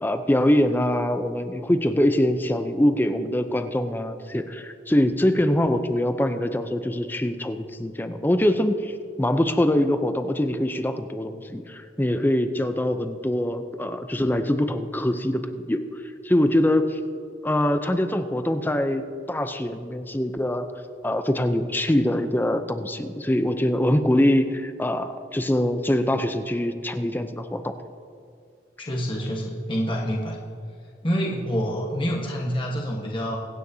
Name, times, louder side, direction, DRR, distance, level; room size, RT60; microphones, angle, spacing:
voice 1, 0.0-15.8 16.2-17.0 17.4-20.7 21.0-27.7, left 1 dB, 10° left, 8 dB, 0.6 m, -23 dB
voice 2, 28.8-30.4 31.0-33.4, equal, 30° left, -2 dB, 1.3 m, -27 dB
24.5 x 9.5 x 2.8 m, 2.3 s
head